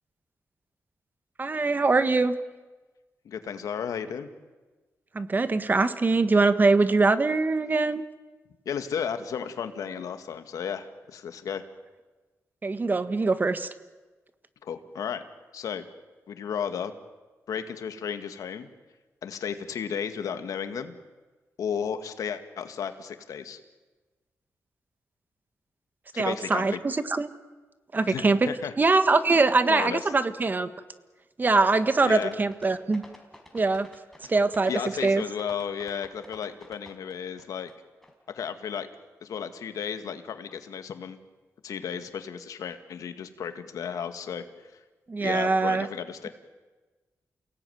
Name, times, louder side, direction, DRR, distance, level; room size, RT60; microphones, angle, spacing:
voice 1, 1.4-2.4 5.1-8.0 12.6-13.7 26.1-27.3 27.9-28.5 28.8-30.7 31.4-33.0 33.5-33.9 34.3-34.7 35.0-35.2 45.1-45.9, right 3 dB, 35° right, 11 dB, 1.4 m, -23 dB
voice 2, 3.3-4.3 8.7-11.6 14.6-15.2 15.5-15.8 16.3-16.9 17.5-18.7 19.2-21.0 21.6-23.6 26.1-26.8 28.1-28.7 29.3-29.4 29.7-30.0 32.0-32.3 34.2-34.3 34.7-37.7 38.3-38.9 39.2-41.2 41.6-44.5 45.2-46.3, left 7 dB, 90° left, 8 dB, 1.9 m, -33 dB
sound 1, 32.1-37.7 38.0-38.1, left 1 dB, 5° left, 4.9 m, -50 dB
29.0 x 18.0 x 9.4 m, 1.3 s
cardioid pair, 100°, 6 cm